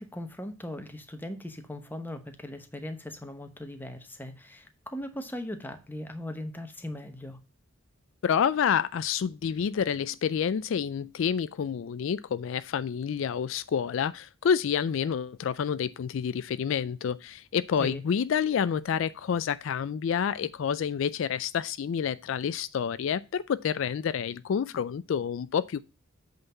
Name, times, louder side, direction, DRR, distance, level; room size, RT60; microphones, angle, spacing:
voice 1, 0.0-7.4 17.8-18.0, left 1 dB, 10° left, 0.9 m, -39 dB
voice 2, 8.2-25.8, left 7 dB, 65° left, 0.3 m, -28 dB
7.9 x 4.0 x 5.4 m
head